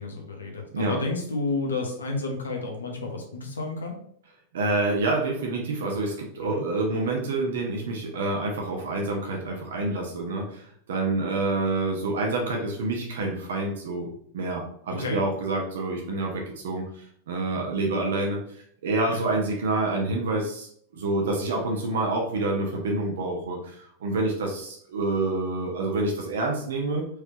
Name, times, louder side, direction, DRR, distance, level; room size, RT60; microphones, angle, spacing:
voice 1, 0.0-4.0 6.4-6.6 14.9-15.2 19.1-19.3, left 3 dB, 70° left, 2 dB, 1.0 m, -31 dB
voice 2, 4.5-18.4 18.8-27.1, right 2 dB, 60° right, 0 dB, 0.9 m, -27 dB
4.7 x 3.4 x 2.8 m, 0.65 s
figure-of-eight pair, 90°, 0 cm